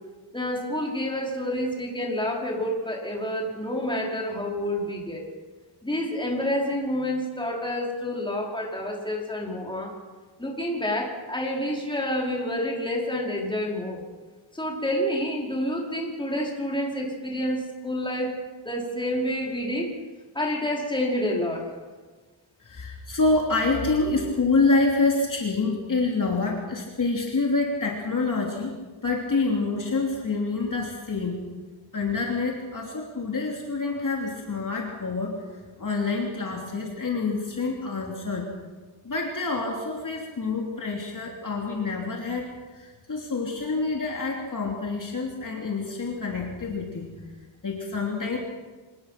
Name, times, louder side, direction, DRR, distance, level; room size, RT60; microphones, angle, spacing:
voice 1, 0.3-5.2 5.8-9.9 10.4-14.0 14.5-19.9 20.3-21.7, left 1 dB, 10° left, -2 dB, 5.1 m, -28 dB
voice 2, 22.6-31.4 31.9-38.5 39.0-47.1 47.6-48.4, left 3 dB, 40° left, -1 dB, 3.2 m, -27 dB
26.5 x 20.0 x 6.0 m, 1.3 s
wide cardioid pair, 140°, 49 cm